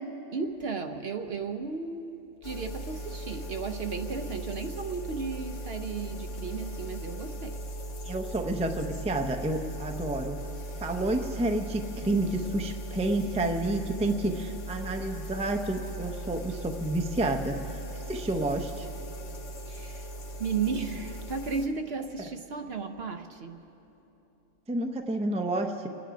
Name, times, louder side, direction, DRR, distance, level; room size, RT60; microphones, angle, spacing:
voice 1, 0.3-7.6 19.7-20.1 20.4-23.6, right 5 dB, 60° right, 7 dB, 0.8 m, -34 dB
sound 1, 2.4-21.7, right 1 dB, 70° left, 1.4 m, -38 dB
voice 2, 8.0-10.4 10.8-17.5 18.1-18.9 22.2-22.3 24.7-25.9, right 2 dB, 5° right, 5 dB, 0.5 m, -29 dB
26.0 x 10.0 x 5.1 m, 3.0 s
omnidirectional pair, 1.3 m